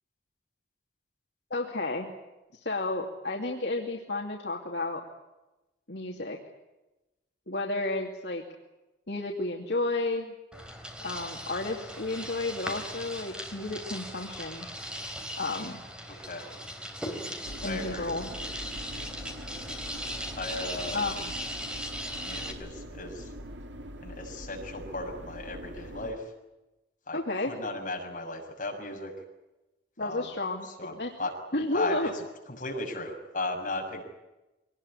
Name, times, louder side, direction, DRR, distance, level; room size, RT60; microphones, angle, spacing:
voice 1, 1.5-2.1 2.6-5.0 5.9-6.4 7.5-8.4 9.1-10.3 11.0-14.7 15.4-15.8 17.6-18.3 20.9-21.3 27.1-27.5 30.0-31.1 31.5-32.1, left 2 dB, 65° left, 0 dB, 2.7 m, -32 dB
sound 1, 10.5-22.5, equal, 5° right, 3.5 m, -38 dB
sound 2, 17.5-26.1, equal, 85° right, 2.5 m, -43 dB
voice 2, 17.6-18.1 20.3-21.0 22.2-23.3 24.0-26.2 27.1-29.1 30.0-30.3 30.8-31.3 31.7-32.1 32.6-34.0, left 2 dB, 45° left, 1 dB, 6.4 m, -36 dB
24.0 x 19.5 x 9.9 m, 1.0 s
head